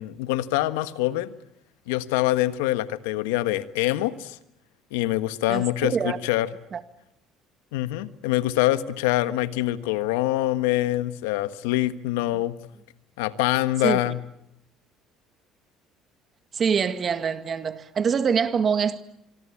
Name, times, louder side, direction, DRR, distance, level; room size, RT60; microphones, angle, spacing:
voice 1, 0.0-1.3 1.9-4.4 4.9-6.5 7.7-12.5 13.2-14.2, left 15 dB, 90° left, 1.4 m, -25 dB
voice 2, 5.5-6.2 6.7-6.8 13.8-14.1 16.5-19.0, right 6 dB, 40° right, 2.0 m, -25 dB
26.0 x 24.0 x 8.6 m
supercardioid pair, 80°, 0 cm